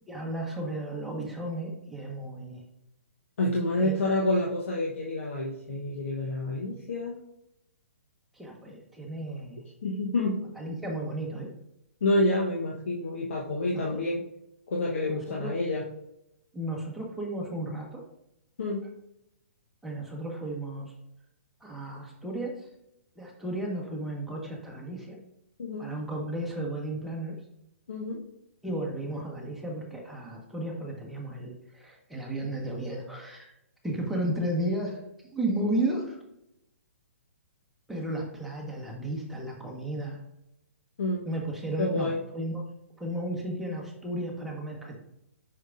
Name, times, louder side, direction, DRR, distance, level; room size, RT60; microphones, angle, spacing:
voice 1, 0.1-2.6 3.8-3.9 8.3-9.6 10.5-11.5 13.7-14.0 15.1-15.5 16.5-18.0 19.8-20.9 21.6-22.5 23.2-25.2 25.8-27.3 28.6-33.5 33.8-35.0 35.3-36.2 37.9-40.2 41.2-42.6 43.0-45.0, right 1 dB, ahead, -3 dB, 1.3 m, -33 dB
voice 2, 3.4-7.2 9.8-10.4 12.0-14.2 14.7-15.8 18.6-18.9 25.6-25.9 27.9-28.2 41.0-41.3 41.8-42.2, left 1 dB, 65° left, -2 dB, 1.1 m, -28 dB
6.4 x 5.9 x 2.5 m, 0.84 s
figure-of-eight pair, 125°, 7 cm